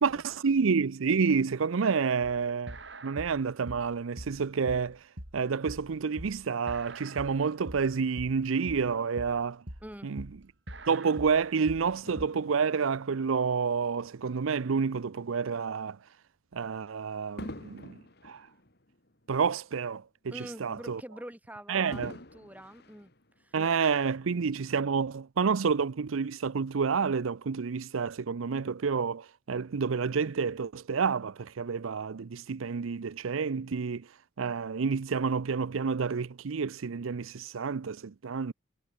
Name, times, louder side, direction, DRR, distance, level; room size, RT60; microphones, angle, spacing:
voice 1, 0.0-2.8 3.0-5.0 5.3-9.6 10.0-10.2 10.9-16.0 16.5-18.0 18.2-18.5 19.3-20.0 20.4-21.0 21.7-22.1 23.5-34.0 34.4-38.5, right 5 dB, 85° right, 0.5 m, -29 dB
sound 1, 2.4-12.3, right 1 dB, 60° right, 7.2 m, -44 dB
voice 2, 9.8-10.1 20.3-23.1 23.4-23.6, equal, 10° right, 5.8 m, -45 dB
Fireworks, 12.0-14.6 15.3-15.5 17.4-19.9 20.3-20.4 21.9-23.8 24.5-24.6, left 1 dB, 55° left, 3.4 m, -47 dB
head